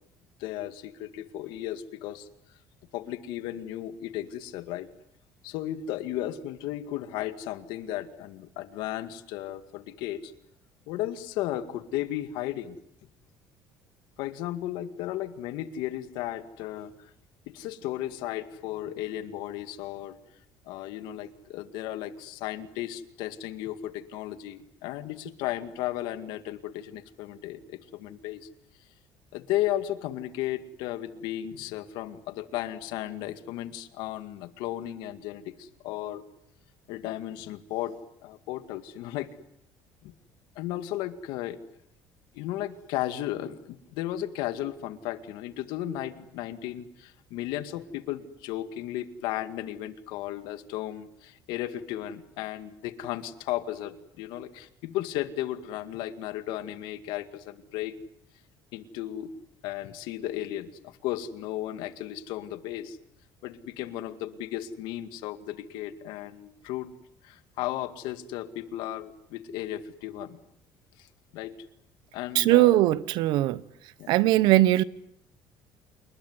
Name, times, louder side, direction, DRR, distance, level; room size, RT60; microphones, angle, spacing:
voice 1, 0.4-2.3 2.9-4.9 5.4-10.3 10.9-12.8 14.2-17.1 17.5-20.2 20.7-28.5 29.3-36.2 36.9-39.3 40.0-40.1 40.6-41.6 42.3-58.0 58.7-59.3 59.6-63.0 63.4-66.9 67.2-70.4 71.0-71.1 71.3-71.5 72.1-72.8 74.0-74.1, left 13 dB, 80° left, 2.1 m, -35 dB
voice 2, 72.3-73.6 74.1-74.8, right 16 dB, 70° right, 1.1 m, -20 dB
28.5 x 21.0 x 9.6 m
cardioid pair, 155°, 8 cm